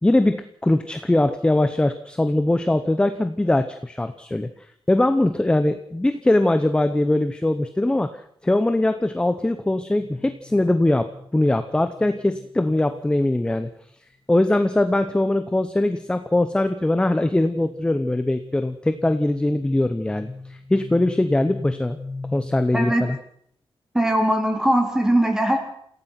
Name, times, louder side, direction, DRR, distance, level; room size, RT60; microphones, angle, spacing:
voice 1, 0.0-4.5 4.9-13.7 14.3-22.0 22.3-23.2, left 1 dB, 10° left, 10 dB, 0.8 m, -21 dB
sound 1, 10.0-13.9 15.3-22.9, left 3 dB, 40° left, 2.0 m, -42 dB
voice 2, 22.7-23.0 23.9-25.6, right 1 dB, 5° right, 3 dB, 3.7 m, -20 dB
28.0 x 16.5 x 5.9 m, 0.66 s
wide cardioid pair, 180°, 9 cm